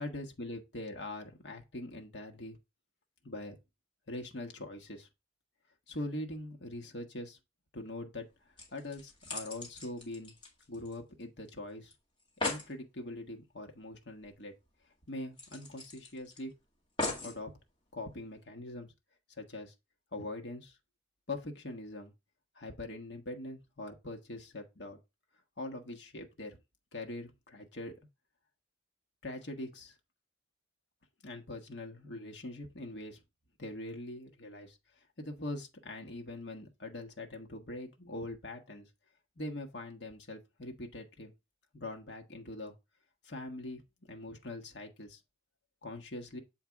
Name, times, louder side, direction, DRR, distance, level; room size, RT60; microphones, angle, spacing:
voice 1, 0.0-2.6 3.2-3.6 4.1-5.1 5.9-7.4 7.7-8.3 8.7-10.3 10.7-11.9 12.4-14.5 15.1-16.5 17.2-17.5 17.9-18.9 19.4-19.7 20.1-20.8 21.3-22.1 22.5-25.0 25.6-26.6 26.9-27.9 29.2-29.9 31.2-33.2 33.6-34.8 35.2-38.9 39.4-41.3 41.7-42.7 43.2-43.8 44.1-45.2 45.8-46.4, left 1 dB, 60° left, 1.2 m, -42 dB
sound 1, 8.2-8.3 8.6-11.2 11.5-11.6 11.9-12.0 12.2-12.7 14.2-14.3 14.7-14.8 15.4-16.4 17.0-17.4 18.1-18.2, left 2 dB, 25° left, 2.0 m, -39 dB
7.4 x 4.5 x 3.4 m
head